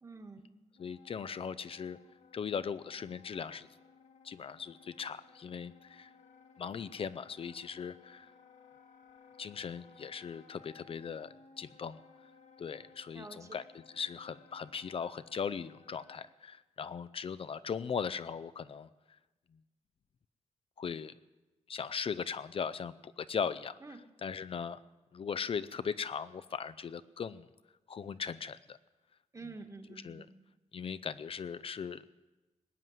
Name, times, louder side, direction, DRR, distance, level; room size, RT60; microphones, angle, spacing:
voice 1, 0.0-0.5 13.1-13.6 23.8-24.0 29.3-30.3, right 3 dB, 25° right, 6 dB, 1.5 m, -48 dB
Wind instrument woodwind instrument, 0.7-16.2, left 5 dB, 80° left, 1.6 m, -60 dB
voice 2, 0.8-2.0 2.3-3.7 4.2-6.1 6.6-8.3 9.4-12.0 12.6-18.9 20.8-21.1 21.7-23.8 24.2-24.8 25.1-27.5 27.9-28.8 30.0-30.3 30.7-32.0, left 6 dB, 50° left, 15 dB, 0.5 m, -39 dB
20.0 x 7.6 x 9.3 m, 1.1 s
wide cardioid pair, 125°, 12 cm